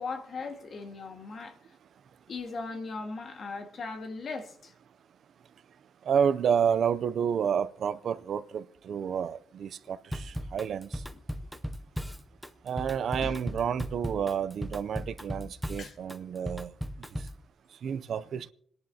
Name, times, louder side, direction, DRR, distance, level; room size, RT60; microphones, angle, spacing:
voice 1, 0.0-1.6 2.3-4.7 13.2-13.3 15.8-16.0, left 4 dB, 50° left, 1.6 m, -38 dB
voice 2, 6.1-11.0 12.6-16.7 17.8-18.5, right 7 dB, 65° right, 0.5 m, -30 dB
Drum kit / Drum, 10.1-17.4, equal, ahead, 0.6 m, -37 dB
28.0 x 10.5 x 2.8 m
wide cardioid pair, 180°, 0 cm